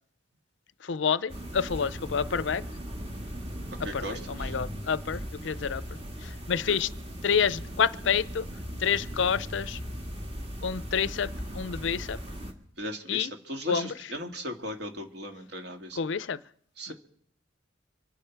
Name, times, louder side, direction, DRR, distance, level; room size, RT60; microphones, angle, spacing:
voice 1, 0.8-2.6 3.9-5.8 6.2-6.9 7.2-8.5 8.8-9.8 10.6-12.2 13.1-13.3 13.7-13.9 16.0-16.4 16.9-17.0, left 6 dB, 65° left, 0.5 m, -28 dB
sound 1, 1.3-12.5, equal, 30° right, 1.8 m, -38 dB
voice 2, 3.8-4.5 6.7-6.8 12.8-16.0 16.8-16.9, equal, 55° right, 2.0 m, -37 dB
26.0 x 9.9 x 4.6 m
head